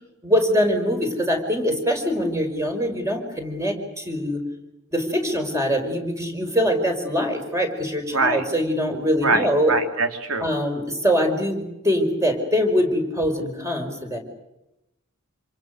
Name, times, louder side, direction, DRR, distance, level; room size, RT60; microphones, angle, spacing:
voice 1, 0.2-4.4 4.9-9.8 10.4-14.2, equal, 15° right, 4 dB, 5.2 m, -23 dB
voice 2, 8.1-8.4 9.2-10.5, right 3 dB, 80° right, 5 dB, 3.7 m, -23 dB
28.0 x 28.0 x 6.7 m, 0.93 s
head